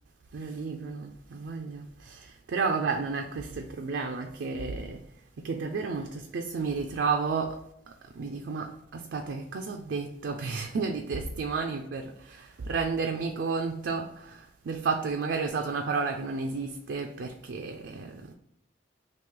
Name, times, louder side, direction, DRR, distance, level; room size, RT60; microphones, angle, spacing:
voice 1, 0.3-5.0 5.4-18.3, right 4 dB, 80° right, 0.4 m, -32 dB
3.1 x 2.8 x 3.6 m
head